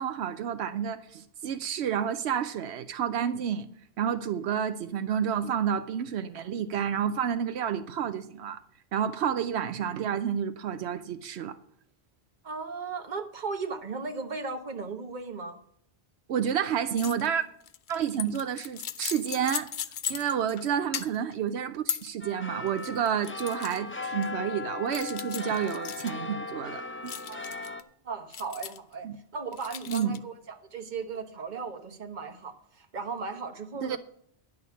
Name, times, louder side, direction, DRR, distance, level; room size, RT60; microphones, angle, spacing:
voice 1, 0.0-3.7 4.0-8.6 8.9-11.6 16.3-17.4 17.9-19.7 20.1-27.1 29.0-29.2 29.9-30.2 33.8-34.0, right 8 dB, 85° right, 11 dB, 0.9 m, -30 dB
voice 2, 12.4-15.6 20.8-20.9 27.3-27.4 27.7-27.8 28.0-34.0, right 4 dB, 45° right, 5 dB, 1.3 m, -37 dB
sound 1, 17.0-17.3 17.6-20.7 20.9-21.3 21.9-22.1 22.7-23.8 24.2-24.3 24.9-26.1 27.1-27.8 28.3-28.9 29.5-30.2, left 9 dB, 55° left, 0.7 m, -37 dB
sound 2, 22.2-27.8, left 4 dB, 15° left, 0.4 m, -38 dB
11.0 x 6.4 x 7.0 m, 0.67 s
omnidirectional pair, 1.1 m